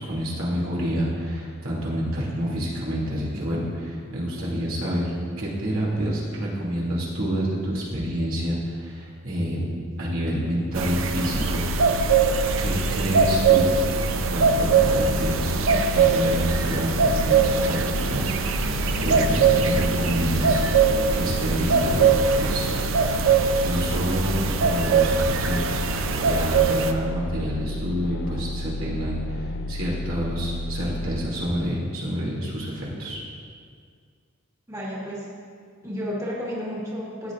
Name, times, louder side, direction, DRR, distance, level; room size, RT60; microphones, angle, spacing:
voice 1, 0.0-9.7 10.0-11.7 12.6-13.8 14.1-20.6 21.1-22.7 23.6-33.2, equal, 90° right, -6 dB, 2.6 m, -28 dB
sound 1, 10.7-26.9, right 5 dB, 70° right, 0.6 m, -22 dB
sound 2, 11.3-31.2, left 1 dB, 55° left, 0.3 m, -32 dB
sound 3, 14.2-23.5, left 1 dB, 85° left, 1.4 m, -36 dB
voice 2, 34.7-35.3 35.8-37.3, equal, 15° right, -5 dB, 1.6 m, -32 dB
14.5 x 8.5 x 2.5 m, 2.1 s
head